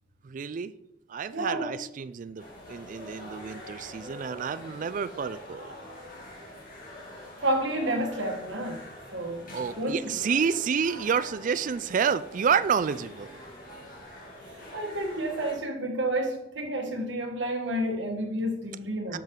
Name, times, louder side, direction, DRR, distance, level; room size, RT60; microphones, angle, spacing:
voice 1, 0.2-0.7 1.1-5.8 9.5-13.4 19.1-19.2, right 6 dB, 40° right, 0.3 m, -29 dB
voice 2, 1.3-1.7 7.4-8.8 9.1-9.4 9.8-10.2 14.5-19.2, right 1 dB, 65° right, 1.4 m, -30 dB
sound 1, 2.4-15.5, left 1 dB, 45° left, 2.3 m, -45 dB
7.5 x 7.3 x 3.8 m
head